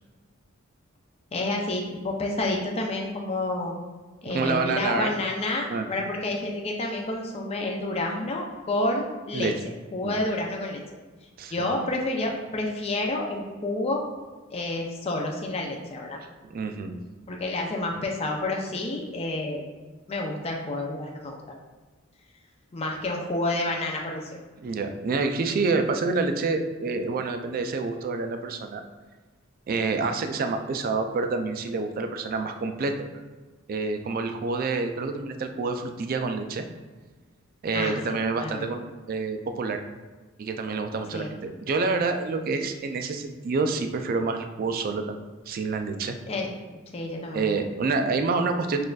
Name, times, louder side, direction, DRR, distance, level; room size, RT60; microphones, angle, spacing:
voice 1, 1.3-3.7 4.2-9.5 9.9-10.8 11.5-14.0 14.5-16.2 17.3-19.6 20.1-21.4 22.7-24.4 37.7-38.7 41.1-41.3 46.3-46.5 46.9-47.6, left 2 dB, 30° left, 0 dB, 0.4 m, -29 dB
voice 2, 4.3-5.1 5.7-5.9 9.3-9.5 10.0-10.2 11.4-11.5 16.5-16.9 24.6-28.8 29.7-32.9 33.7-36.6 37.6-39.8 40.4-45.2 45.5-46.1 47.3-48.8, right 4 dB, 40° right, 6 dB, 0.3 m, -27 dB
6.1 x 2.5 x 2.3 m, 1.3 s
head